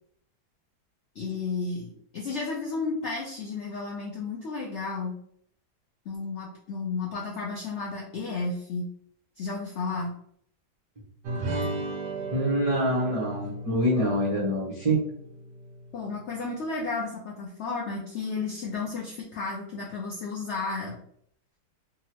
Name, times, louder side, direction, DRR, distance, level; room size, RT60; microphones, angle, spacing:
voice 1, 1.1-5.2 6.1-8.9 9.4-10.2 15.9-21.0, left 4 dB, 75° left, -2 dB, 0.6 m, -33 dB
sound 1, 11.2-15.9, right 2 dB, 75° right, 1.1 m, -35 dB
voice 2, 12.3-15.0, right 1 dB, 55° right, -8 dB, 0.3 m, -25 dB
3.5 x 2.0 x 2.8 m, 0.66 s
omnidirectional pair, 1.8 m